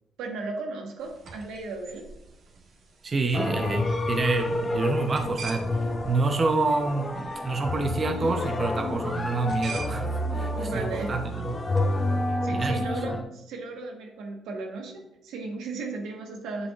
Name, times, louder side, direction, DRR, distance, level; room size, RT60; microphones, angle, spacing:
voice 1, 0.2-2.1 9.2-9.3 10.5-11.2 12.4-16.7, right 3 dB, 90° right, 1 dB, 1.5 m, -36 dB
sound 1, 1.0-12.3, right 4 dB, 65° right, 1.7 m, -45 dB
voice 2, 3.0-11.6 12.5-13.0, right 3 dB, 35° right, 5 dB, 0.8 m, -28 dB
sound 2, 3.3-13.2, left 2 dB, 25° left, 0.9 m, -29 dB
7.8 x 6.9 x 2.5 m, 0.81 s
cardioid pair, 90°, 0 cm